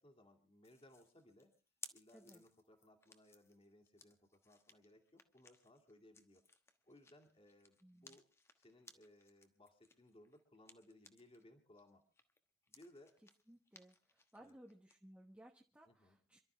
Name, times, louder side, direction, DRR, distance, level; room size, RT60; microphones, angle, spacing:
voice 1, 0.0-1.5 1.9-6.4 6.8-8.2 8.6-12.0 12.7-13.1 14.4-14.6 15.9-16.2, left 1 dB, 30° left, 4 dB, 2.5 m, -64 dB
sound 1, 0.6-11.4 11.8-15.0, left 3 dB, 15° left, 1.2 m, -61 dB
voice 2, 7.8-8.2 13.5-16.4, right 1 dB, 5° right, 0 dB, 1.1 m, -61 dB
27.5 x 12.5 x 3.4 m, 0.33 s
head